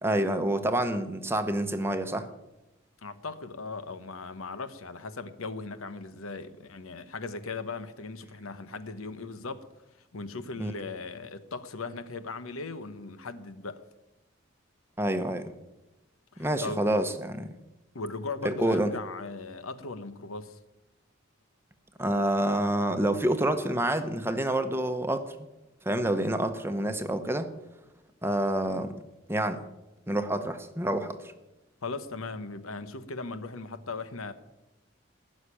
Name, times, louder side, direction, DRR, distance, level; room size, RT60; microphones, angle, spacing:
voice 1, 0.0-2.3 10.6-10.7 15.0-15.5 16.4-17.5 18.4-18.9 22.0-25.5 25.8-27.5 28.2-28.9 29.3-29.6 30.1-31.2, right 1 dB, 10° right, 0.9 m, -28 dB
voice 2, 3.0-9.6 10.1-13.8 16.3-16.8 17.9-20.6 31.8-34.3, left 3 dB, 85° left, 1.1 m, -38 dB
16.0 x 6.6 x 10.0 m
head